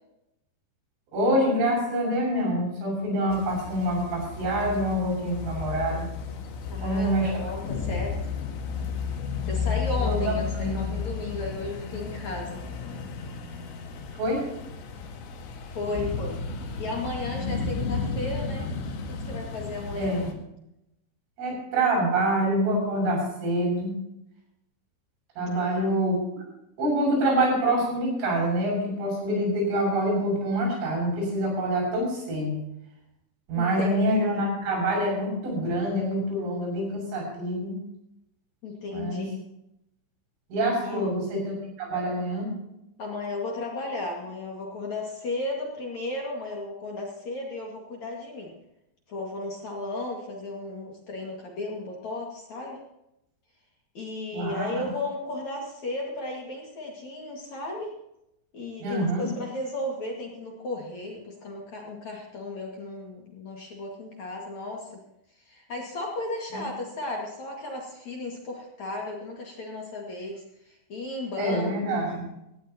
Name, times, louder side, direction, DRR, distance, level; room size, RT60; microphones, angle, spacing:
voice 1, 1.1-6.1 6.8-7.3 10.0-10.8 14.1-14.4 20.0-20.3 21.4-23.9 25.4-26.4 26.8-32.6 33.5-37.8 38.9-39.2 40.5-41.4 41.8-42.5 54.3-54.9 58.8-59.2 66.5-66.6 71.4-72.3, right 1 dB, 85° right, -1 dB, 9.6 m, -26 dB
sound 1, 3.3-20.3, left 5 dB, 85° left, 4.4 m, -33 dB
voice 2, 6.7-8.2 9.5-12.6 15.7-16.4 16.8-18.7 19.1-20.3 25.5-25.8 33.5-34.4 38.6-39.3 40.8-41.2 43.0-48.6 49.1-52.8 53.9-57.9 58.5-65.0 65.4-72.0, left 2 dB, 45° left, -1 dB, 2.7 m, -35 dB
18.5 x 16.5 x 3.0 m, 0.84 s
omnidirectional pair, 5.5 m